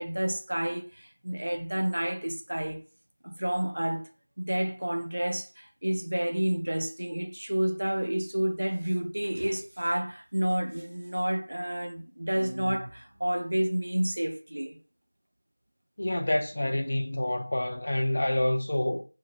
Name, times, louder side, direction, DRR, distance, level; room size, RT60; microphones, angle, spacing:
voice 1, 0.0-2.8 3.2-4.1 4.4-14.8, right 1 dB, 50° right, 0.3 m, -30 dB
voice 2, 16.0-19.0, left 1 dB, 35° left, 0.3 m, -27 dB
2.4 x 2.0 x 2.7 m
figure-of-eight pair, 175°, 0 cm